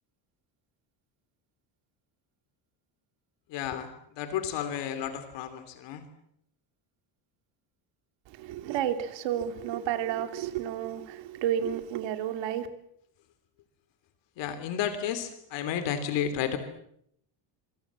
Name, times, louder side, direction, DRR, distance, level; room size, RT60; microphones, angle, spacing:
voice 1, 3.5-3.9 4.2-6.0 14.4-16.6, left 9 dB, 65° left, 3.2 m, -32 dB
voice 2, 8.3-12.7, right 10 dB, 65° right, 3.0 m, -31 dB
26.5 x 24.0 x 7.5 m
cardioid pair, 180°, 47 cm